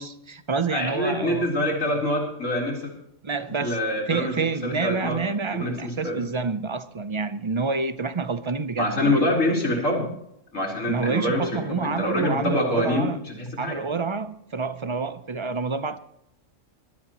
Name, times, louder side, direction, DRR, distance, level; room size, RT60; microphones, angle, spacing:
voice 1, 0.0-1.5 3.2-3.8 4.1-9.2 10.9-13.2 13.6-16.0, right 4 dB, 30° right, 0.5 m, -28 dB
voice 2, 0.7-2.9 3.6-4.3 4.6-5.2 5.5-6.2 8.8-10.1 10.5-13.8, left 1 dB, 80° left, 4.2 m, -25 dB
22.0 x 12.5 x 3.0 m
omnidirectional pair, 1.3 m